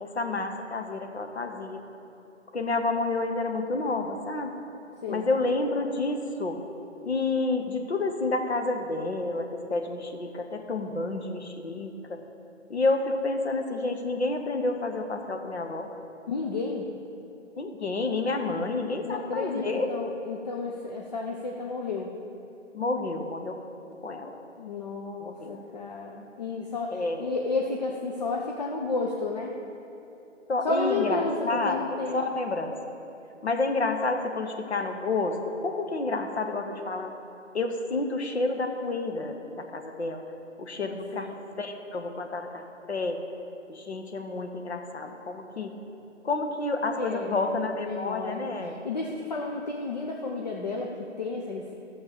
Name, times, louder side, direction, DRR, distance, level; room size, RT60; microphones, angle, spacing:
voice 1, 0.0-1.8 2.5-4.6 5.1-6.6 7.0-12.2 12.7-15.9 17.6-19.9 22.7-23.6 24.0-24.4 25.2-25.6 26.9-27.3 30.5-31.2 31.5-32.7 33.4-37.1 37.5-40.2 40.6-43.2 43.7-45.7 46.2-48.7, left 3 dB, 60° left, 4 dB, 1.3 m, -29 dB
voice 2, 16.3-16.9 19.0-22.1 24.6-29.5 30.6-32.2 40.8-41.3 47.0-47.5 47.7-51.7, left 3 dB, 35° left, 0 dB, 0.7 m, -32 dB
13.0 x 6.9 x 6.8 m, 2.9 s
figure-of-eight pair, 150°, 37 cm